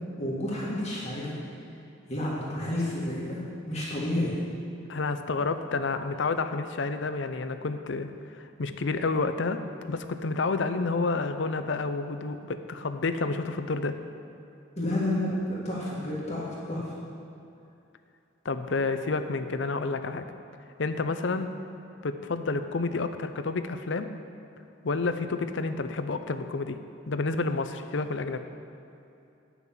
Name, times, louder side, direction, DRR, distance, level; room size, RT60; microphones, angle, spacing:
voice 1, 0.2-1.3 2.1-3.4 3.7-4.3 14.8-16.9, left 1 dB, 35° left, -7 dB, 1.9 m, -30 dB
voice 2, 4.9-14.0 18.4-20.3 20.8-21.5 22.0-24.1 24.8-26.8 27.1-28.4, left 3 dB, 65° left, 9 dB, 0.6 m, -29 dB
9.6 x 6.0 x 7.2 m, 2.7 s
head